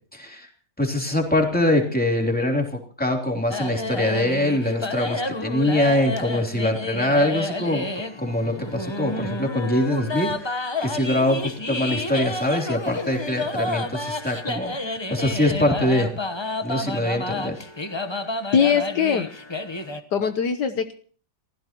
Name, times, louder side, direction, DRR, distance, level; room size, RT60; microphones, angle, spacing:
voice 1, 0.1-0.5 0.8-7.9 8.2-14.7 15.1-16.1 16.6-17.5, left 1 dB, 5° left, 0 dB, 3.3 m, -23 dB
sound 1, 3.5-20.0, left 2 dB, 20° left, 0.8 m, -30 dB
voice 2, 18.5-19.3 20.1-20.9, left 7 dB, 65° left, 8 dB, 1.6 m, -21 dB
29.0 x 15.5 x 3.0 m, 0.42 s
omnidirectional pair, 2.0 m